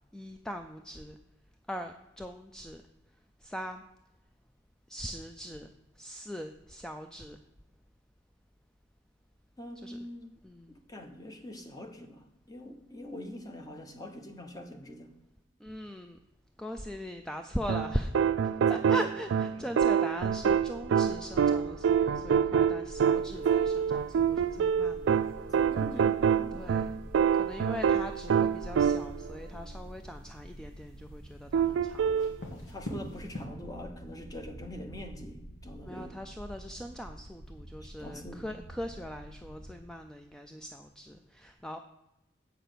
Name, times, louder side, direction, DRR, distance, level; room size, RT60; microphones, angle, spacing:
voice 1, 0.1-1.2 1.7-2.8 3.4-3.8 4.9-5.7 6.0-7.4 9.8-10.0 10.4-10.8 15.6-16.2 16.6-18.1 18.4-25.3 26.5-26.9 27.3-32.3 35.8-41.8, equal, 5° left, 6 dB, 0.3 m, -40 dB
voice 2, 9.6-10.4 10.7-15.1 18.6-18.8 19.6-19.7 25.6-26.7 32.5-36.1 37.8-38.5, left 1 dB, 20° left, 6 dB, 0.9 m, -44 dB
sound 1, 17.7-29.3 31.5-32.4, right 7 dB, 80° right, 0.3 m, -26 dB
sound 2, 20.1-39.8, equal, 60° left, 1.7 m, -48 dB
sound 3, 23.0-33.5, equal, 80° left, 1.9 m, -49 dB
8.0 x 5.9 x 6.7 m, 0.94 s
head